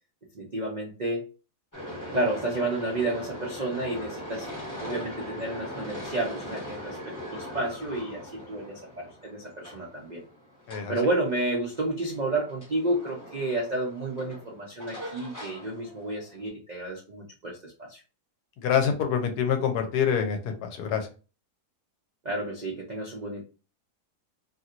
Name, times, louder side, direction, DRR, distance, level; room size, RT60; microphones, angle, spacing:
voice 1, 0.3-1.3 2.1-4.5 4.8-10.2 10.9-18.0 22.2-23.4, right 2 dB, 85° right, -2 dB, 0.3 m, -31 dB
sound 1, 1.7-16.5, equal, 15° left, 1.1 m, -41 dB
voice 2, 18.6-21.1, left 7 dB, 80° left, 5 dB, 1.2 m, -26 dB
2.9 x 2.5 x 2.8 m, 0.34 s
omnidirectional pair, 1.7 m